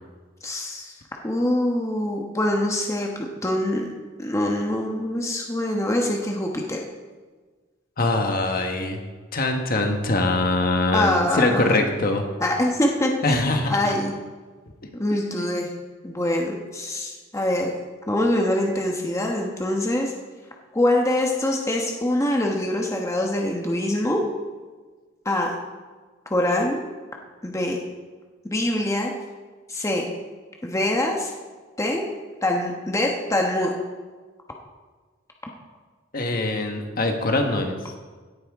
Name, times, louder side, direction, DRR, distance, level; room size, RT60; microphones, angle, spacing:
voice 1, 0.4-0.9 1.2-3.9 4.2-6.8 10.9-11.8 12.4-13.4 13.7-14.1 14.9-15.7 16.0-17.7 18.1-20.1 20.7-24.2 25.2-25.5 26.3-26.8 27.4-27.8 28.4-29.1 29.7-30.1 30.6-31.3 31.8-32.0 32.4-33.7, left 1 dB, 15° left, 0 dB, 1.1 m, -24 dB
voice 2, 8.0-9.0 9.3-12.3 13.2-13.9 36.1-37.8, left 2 dB, 50° left, 3 dB, 1.4 m, -23 dB
17.0 x 8.9 x 3.6 m, 1.4 s
head